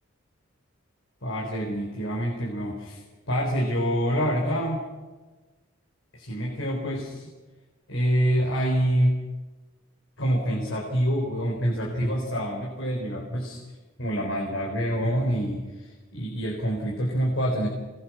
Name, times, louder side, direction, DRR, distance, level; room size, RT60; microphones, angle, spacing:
voice 1, 1.2-4.8 6.1-7.3 7.9-9.2 10.2-13.6 14.0-17.7, equal, 65° left, -2 dB, 4.4 m, -26 dB
27.0 x 21.0 x 6.3 m, 1.2 s
head